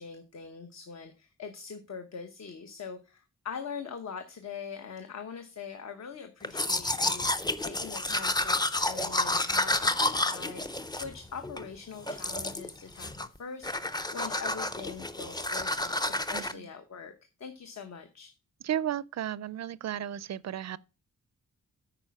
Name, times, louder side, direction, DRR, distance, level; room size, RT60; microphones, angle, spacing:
voice 1, 0.0-17.1 17.4-18.3, left 6 dB, 55° left, 1.0 m, -43 dB
Domestic sounds home sounds, 6.4-11.7 12.1-12.7 13.0-13.4 13.6-16.5, left 2 dB, 15° left, 0.5 m, -30 dB
voice 2, 16.3-16.7 18.6-20.8, right 10 dB, 55° right, 0.4 m, -34 dB
8.9 x 5.1 x 5.8 m
wide cardioid pair, 160°, 32 cm